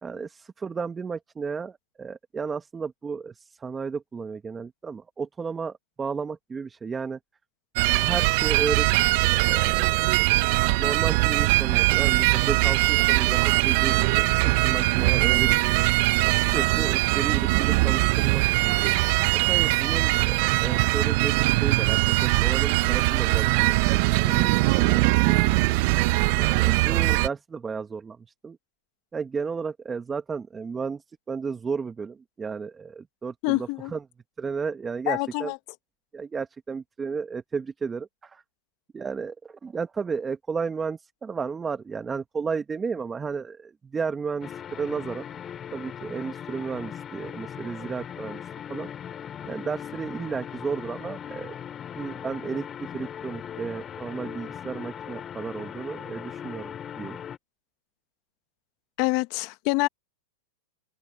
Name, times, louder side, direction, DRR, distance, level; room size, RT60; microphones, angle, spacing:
voice 1, 0.0-7.2 8.0-9.0 9.3-10.0 10.8-15.5 16.2-19.2 19.5-26.0 26.4-28.6 29.1-34.0 34.4-35.5 36.1-38.4 38.9-45.3 45.7-48.4 48.7-48.9 49.5-51.5 52.0-57.2, right 5 dB, 20° right, 2.1 m, -33 dB
sound 1, 7.8-27.3, right 23 dB, 55° right, 0.9 m, -21 dB
voice 2, 33.4-33.9 35.1-35.6 59.0-59.9, left 25 dB, 50° left, 1.2 m, -26 dB
sound 2, 44.4-57.4, left 9 dB, 30° left, 2.9 m, -39 dB
open air
hypercardioid pair, 110°, 0 cm